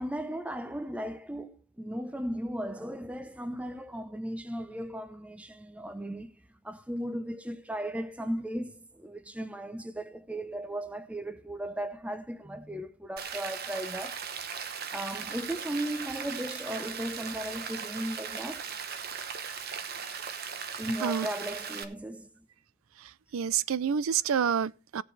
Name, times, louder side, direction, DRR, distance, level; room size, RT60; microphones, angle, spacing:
voice 1, 0.0-6.4 6.6-14.2 14.9-18.7 20.8-22.5, right 1 dB, 5° right, 0.6 m, -36 dB
Rain, 13.2-21.8, right 6 dB, 45° right, 1.0 m, -38 dB
voice 2, 23.3-25.0, right 7 dB, 70° right, 0.4 m, -28 dB
17.0 x 7.2 x 3.2 m
head